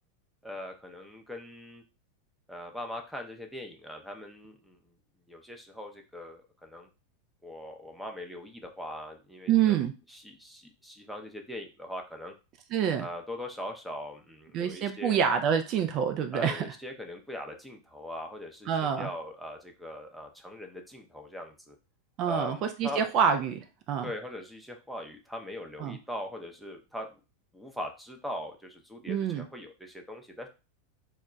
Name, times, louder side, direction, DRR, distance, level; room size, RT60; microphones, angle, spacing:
voice 1, 0.4-1.8 2.5-4.8 5.3-6.9 7.4-9.8 10.1-12.3 13.0-15.2 16.3-21.8 22.3-23.0 24.0-27.2 27.5-30.5, left 1 dB, ahead, 2 dB, 0.6 m, -41 dB
voice 2, 9.5-9.9 12.7-13.1 14.5-16.7 18.7-19.1 22.2-24.1 25.8-26.0 29.1-29.4, right 8 dB, 45° right, 7 dB, 0.4 m, -27 dB
2.2 x 2.1 x 3.8 m, 0.31 s
hypercardioid pair, 95°, 0 cm